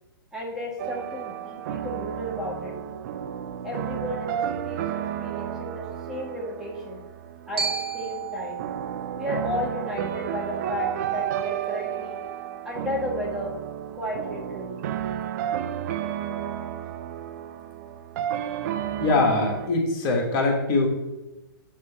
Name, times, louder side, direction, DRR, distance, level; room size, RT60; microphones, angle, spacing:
voice 1, 0.3-3.1 3.6-7.0 7.5-8.6 9.2-12.2 12.6-13.6 13.9-14.8, left 1 dB, 5° right, -4 dB, 1.3 m, -33 dB
sound 1, 0.8-19.7, right 10 dB, 50° right, 0.4 m, -32 dB
Glockenspiel, 7.6-11.7, right 6 dB, 80° right, 1.2 m, -35 dB
voice 2, 19.0-20.9, left 3 dB, 35° left, 0 dB, 1.5 m, -22 dB
6.6 x 3.3 x 4.7 m, 1.0 s
hypercardioid pair, 120°, 12 cm